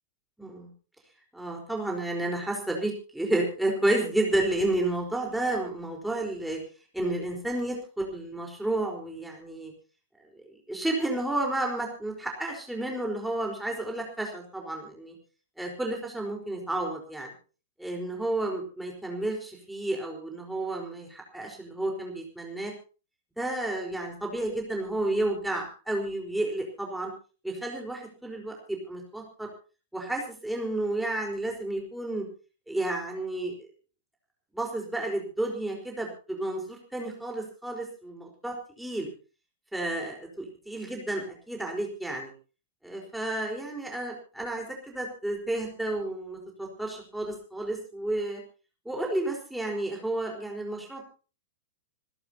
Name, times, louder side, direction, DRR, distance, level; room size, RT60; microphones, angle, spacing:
voice 1, 0.4-0.7 1.3-6.6 6.9-9.7 10.4-15.1 15.6-17.3 17.8-22.7 23.4-27.1 27.4-29.5 29.9-32.2 32.7-33.7 34.5-39.1 39.7-42.3 42.8-48.4 48.8-51.0, right 1 dB, 5° right, 0 dB, 4.5 m, -31 dB
27.0 x 12.0 x 2.9 m, 0.35 s
figure-of-eight pair, 100°, 0 cm